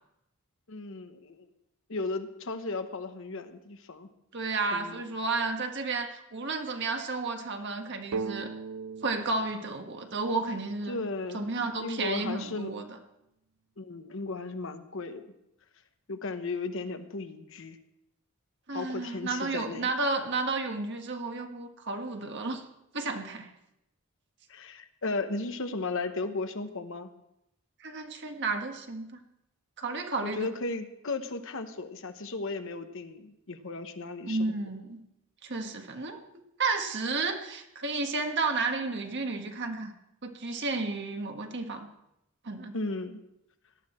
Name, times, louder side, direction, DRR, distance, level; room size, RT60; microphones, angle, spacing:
voice 1, 0.7-1.5 1.9-4.1 4.7-5.0 10.9-11.5 11.8-12.7 13.8-15.3 16.1-17.8 18.7-19.9 24.5-27.1 30.2-34.5 42.7-43.2, left 3 dB, 65° left, 8 dB, 1.1 m, -35 dB
voice 2, 4.3-8.5 9.0-11.0 11.3-12.9 18.7-22.6 22.9-23.5 27.8-29.2 29.8-30.5 34.3-35.0 35.4-36.2 36.6-39.9 40.2-41.9 42.4-42.7, right 3 dB, 55° right, 4 dB, 1.5 m, -32 dB
sound 1, 8.1-11.8, right 5 dB, 90° right, 0.5 m, -40 dB
18.0 x 12.0 x 4.4 m, 0.85 s
head